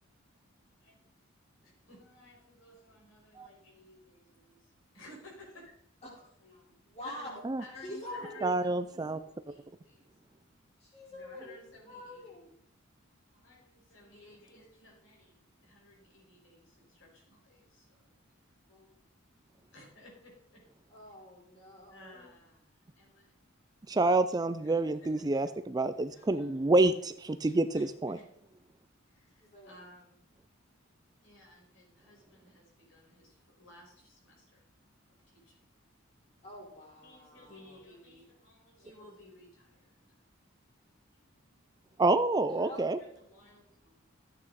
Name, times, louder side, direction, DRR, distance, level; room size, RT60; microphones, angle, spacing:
voice 1, 1.6-4.6 4.9-5.7 6.4-6.7 7.0-9.2 9.5-10.1 11.1-12.2 13.3-15.3 15.6-18.1 18.7-18.9 19.7-20.6 21.9-22.7 23.0-23.3 24.6-25.4 26.1-26.5 27.7-28.3 29.1-30.2 31.2-34.6 35.3-35.6 37.0-39.8 42.6-44.1, left 1 dB, 70° left, -2 dB, 5.1 m, -56 dB
voice 2, 6.8-7.3 7.8-8.6 10.8-12.5 20.9-22.3 29.4-29.8 36.4-37.8 42.6-42.8, left 1 dB, 30° left, -3 dB, 4.2 m, -45 dB
voice 3, 8.4-9.2 23.9-28.2 42.0-43.0, right 2 dB, 20° right, 12 dB, 0.4 m, -28 dB
13.5 x 8.6 x 4.1 m, 0.69 s
head